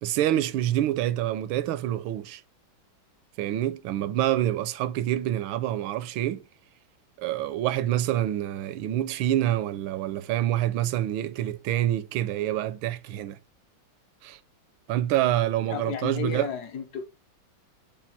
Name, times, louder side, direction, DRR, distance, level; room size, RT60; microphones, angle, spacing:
voice 1, 0.0-2.4 3.4-6.4 7.2-13.4 14.2-14.4 14.9-16.5, right 13 dB, 85° right, 1.4 m, -27 dB
voice 2, 15.7-17.0, left 6 dB, 65° left, 1.1 m, -33 dB
7.1 x 2.4 x 5.6 m
omnidirectional pair, 2.1 m